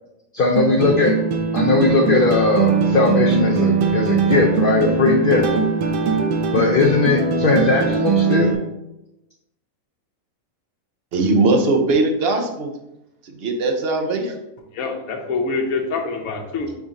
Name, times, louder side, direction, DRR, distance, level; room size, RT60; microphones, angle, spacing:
voice 1, 0.3-1.1 1.5-5.5 6.5-8.5, left 4 dB, 70° left, 0 dB, 0.5 m, -18 dB
sound 1, 0.6-8.6, right 5 dB, 80° right, 1.0 m, -20 dB
voice 2, 11.1-12.7 13.4-14.3, right 3 dB, 55° right, 3 dB, 0.8 m, -19 dB
voice 3, 14.7-16.8, left 4 dB, 90° left, 2 dB, 1.1 m, -25 dB
4.0 x 3.6 x 3.7 m, 0.92 s
omnidirectional pair, 1.5 m